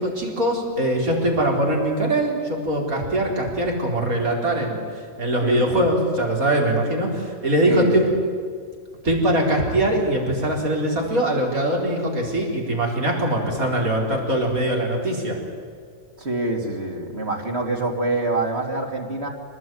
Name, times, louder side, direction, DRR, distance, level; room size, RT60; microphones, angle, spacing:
voice 1, 0.0-8.0 9.0-15.4, right 1 dB, 80° right, -1 dB, 4.8 m, -22 dB
voice 2, 5.4-5.9 7.6-8.1 16.2-19.3, right 2 dB, 50° right, 2 dB, 3.0 m, -26 dB
26.0 x 19.5 x 9.4 m, 2.1 s
omnidirectional pair, 1.5 m